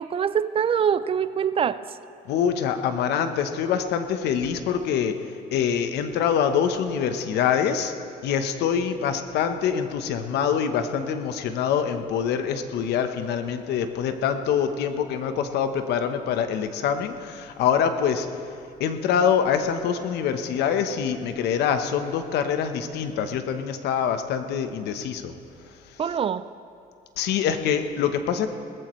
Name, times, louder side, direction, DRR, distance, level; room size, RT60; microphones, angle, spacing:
voice 1, 0.0-2.0 26.0-26.5, right 8 dB, 35° right, 15 dB, 0.4 m, -24 dB
voice 2, 2.3-7.9 8.2-18.3 18.8-25.3 25.9-26.0 27.2-28.5, left 7 dB, 80° left, 8 dB, 1.0 m, -25 dB
19.5 x 14.5 x 3.2 m, 2.5 s
cardioid pair, 110°, 17 cm